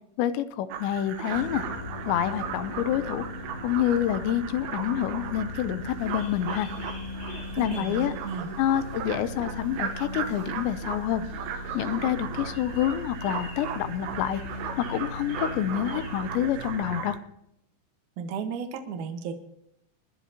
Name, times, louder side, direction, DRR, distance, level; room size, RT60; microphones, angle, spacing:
voice 1, 0.2-1.6 2.1-3.3 3.6-6.7 7.6-8.1 8.6-11.3 11.7-14.4 14.8-17.2, left 11 dB, 80° left, 11 dB, 2.7 m, -27 dB
sound 1, 0.7-17.2, right 7 dB, 85° right, 3.7 m, -37 dB
sound 2, 1.3-17.0, left 1 dB, 50° right, 1.0 m, -39 dB
sound 3, 5.8-16.7, left 3 dB, 60° left, 6.3 m, -50 dB
voice 2, 7.5-8.5 18.2-19.3, right 6 dB, 70° right, 5 dB, 1.9 m, -34 dB
23.5 x 11.5 x 2.9 m, 0.78 s
omnidirectional pair, 5.7 m